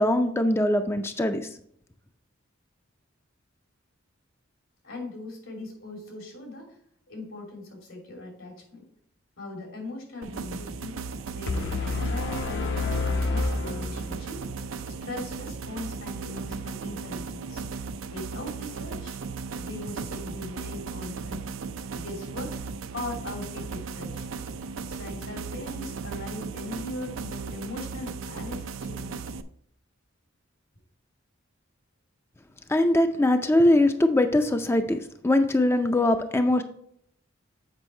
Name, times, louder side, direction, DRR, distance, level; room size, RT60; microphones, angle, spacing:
voice 1, 0.0-1.4 32.7-36.6, left 1 dB, 10° left, 7 dB, 0.4 m, -22 dB
voice 2, 4.8-6.8 7.1-8.9 9.4-11.1 11.3-14.5 14.9-17.7 18.1-19.2 19.5-21.5 21.9-22.6 22.9-24.3 24.9-29.3, left 2 dB, 85° left, 1 dB, 3.0 m, -40 dB
sound 1, 10.2-29.4, right 4 dB, 80° right, 0.5 m, -36 dB
sound 2, 11.5-14.5, left 3 dB, 65° left, 0.8 m, -29 dB
8.1 x 5.3 x 4.3 m, 0.67 s
head